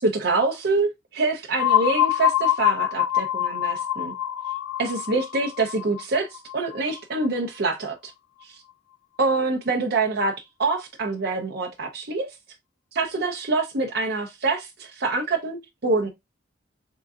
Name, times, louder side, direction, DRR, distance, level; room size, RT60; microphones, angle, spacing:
voice 1, 0.0-4.1 4.8-8.1 8.4-8.5 9.2-12.3 12.9-16.1, right 3 dB, 55° right, 0.7 m, -25 dB
sound 1, 1.6-7.3, left 12 dB, 85° left, 0.3 m, -25 dB
3.8 x 3.8 x 2.3 m
head